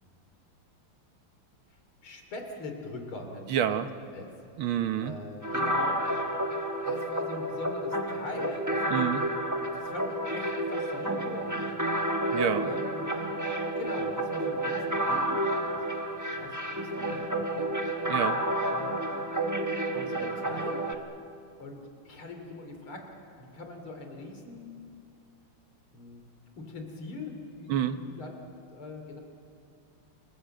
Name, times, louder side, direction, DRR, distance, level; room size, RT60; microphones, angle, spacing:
voice 1, 2.0-3.8 4.1-4.3 5.0-6.0 6.9-9.1 9.7-11.8 12.6-13.1 13.8-15.4 15.8-15.9 16.4-17.7 18.7-19.3 19.9-20.8 21.6-24.7 25.9-26.2 26.6-28.3 28.7-29.2, left 2 dB, 85° left, 4 dB, 3.8 m, -42 dB
voice 2, 3.5-3.9 4.6-5.1 8.9-9.3 12.3-12.7 18.1-18.4 27.7-28.0, right 9 dB, 80° right, 10 dB, 1.8 m, -28 dB
sound 1, 5.4-20.9, right 1 dB, 10° right, 0.9 m, -30 dB
28.5 x 20.0 x 7.8 m, 2.5 s
omnidirectional pair, 2.3 m